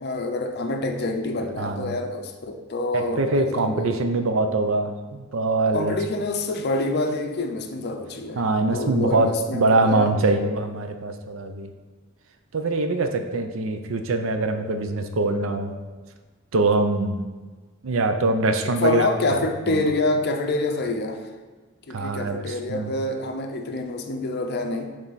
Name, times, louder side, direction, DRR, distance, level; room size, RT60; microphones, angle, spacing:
voice 1, 0.0-4.0 5.7-8.4 8.7-10.1 18.6-21.3 21.9-24.9, left 2 dB, 50° left, 5 dB, 0.6 m, -27 dB
voice 2, 1.6-1.9 2.9-5.9 8.4-11.7 12.5-15.7 16.5-17.3 17.8-19.1 19.7-19.8 21.9-22.9, right 2 dB, 70° right, 6 dB, 0.6 m, -23 dB
7.2 x 3.3 x 4.1 m, 1.3 s
head